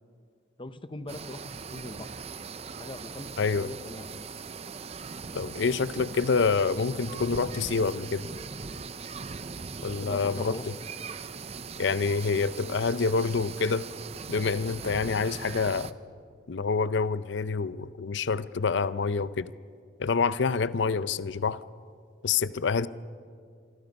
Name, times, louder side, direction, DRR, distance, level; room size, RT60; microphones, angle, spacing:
voice 1, 0.6-2.1 2.8-4.4 10.0-10.7, left 1 dB, 25° left, 0.8 m, -41 dB
sound 1, 1.1-15.9, right 5 dB, 35° right, 0.6 m, -40 dB
voice 2, 3.4-3.7 5.3-8.3 9.8-10.6 11.8-13.9 14.3-15.9 16.5-19.5 20.0-21.6 22.2-22.9, left 4 dB, 65° left, 0.5 m, -27 dB
27.0 x 24.0 x 5.4 m
head